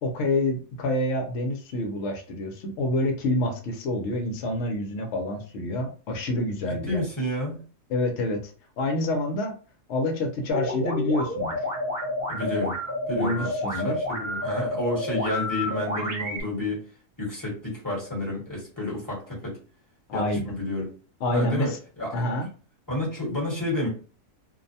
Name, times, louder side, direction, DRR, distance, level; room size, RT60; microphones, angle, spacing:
voice 1, 0.0-7.0 7.9-8.5 8.8-9.6 9.9-11.6 13.1-14.0 20.1-20.4 21.2-21.8 22.1-22.5, left 1 dB, 60° left, 4 dB, 0.9 m, -27 dB
voice 2, 6.9-7.6 12.3-12.8 13.1-16.8 17.2-19.6 20.1-20.9 21.3-22.3 22.9-23.9, left 1 dB, 15° left, -4 dB, 1.0 m, -30 dB
sound 1, 10.5-16.4, left 1 dB, 50° right, 1.0 m, -30 dB
2.6 x 2.1 x 2.6 m, 0.38 s
omnidirectional pair, 1.5 m